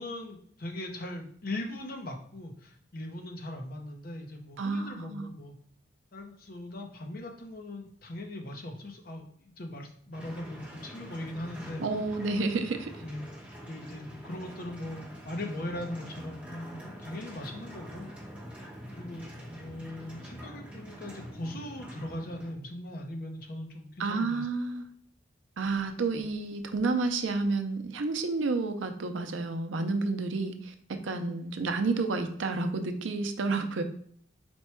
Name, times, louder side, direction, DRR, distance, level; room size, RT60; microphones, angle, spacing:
voice 1, 0.0-5.6 6.1-11.8 13.0-13.2 13.7-18.1 18.9-19.3 19.5-24.5, left 1 dB, 50° left, 3 dB, 0.7 m, -39 dB
voice 2, 4.6-5.3 11.8-12.9 24.0-24.8 25.6-30.7 31.0-33.8, right 3 dB, 80° right, 7 dB, 0.5 m, -30 dB
sound 1, 10.1-22.5, equal, 5° right, 0.8 m, -45 dB
4.4 x 2.2 x 4.4 m, 0.62 s
head